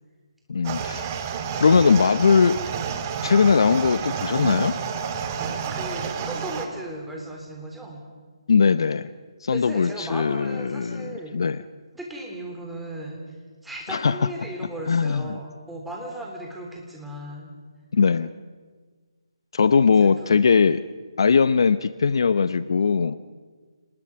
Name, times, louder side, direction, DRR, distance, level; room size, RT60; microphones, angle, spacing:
voice 1, 0.5-1.1 1.6-2.6 3.2-4.7 8.5-9.1 9.4-11.6 13.9-14.3 14.9-15.4 17.9-18.3 19.5-20.8 21.2-23.2, left 5 dB, 60° left, 14 dB, 0.7 m, -20 dB
sound 1, 0.6-6.7, right 6 dB, 30° right, 1.9 m, -30 dB
voice 2, 5.4-8.0 9.5-11.4 11.9-13.2 13.6-17.5 20.0-20.4, right 1 dB, 5° right, -1 dB, 3.4 m, -36 dB
27.5 x 20.0 x 6.0 m, 1.5 s
figure-of-eight pair, 150°, 3 cm